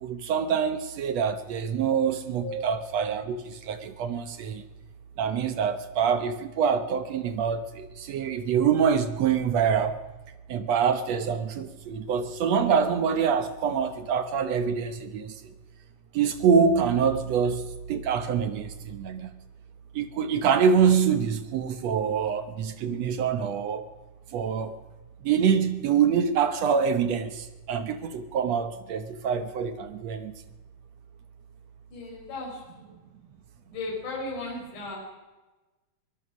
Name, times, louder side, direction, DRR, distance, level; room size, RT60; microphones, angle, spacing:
voice 1, 0.0-4.6 5.2-10.0 10.5-15.3 16.1-19.3 20.0-23.9 24.3-24.7 25.2-30.3, right 7 dB, 65° right, 10 dB, 1.8 m, -25 dB
voice 2, 31.9-32.9 33.7-35.0, left 2 dB, 65° left, -2 dB, 6.0 m, -35 dB
24.0 x 20.0 x 6.2 m, 1.2 s
omnidirectional pair, 3.9 m